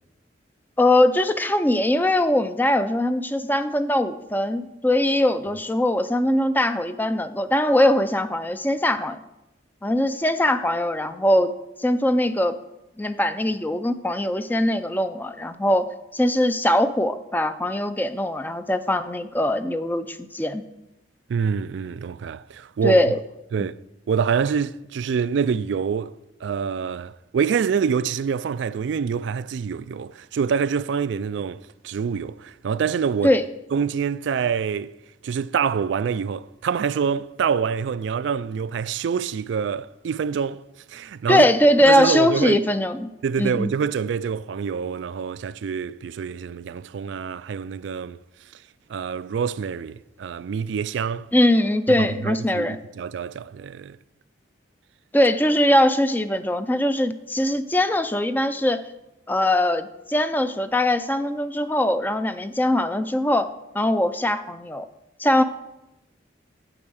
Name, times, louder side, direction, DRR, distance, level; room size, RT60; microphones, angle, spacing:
voice 1, 0.8-9.2 9.8-11.5 11.8-12.5 13.0-15.8 16.1-20.6 22.8-23.2 33.2-33.4 41.3-43.1 43.4-43.7 51.3-52.8 55.1-58.8 59.3-63.5 63.7-64.9 65.2-65.4, left 1 dB, 10° left, 0.4 m, -21 dB
voice 2, 21.3-23.0 23.5-26.2 26.4-33.4 33.7-34.9 35.2-41.5 41.9-42.6 43.2-48.2 48.9-51.3 51.9-54.0, right 6 dB, 70° right, 0.3 m, -26 dB
8.8 x 7.8 x 6.4 m
head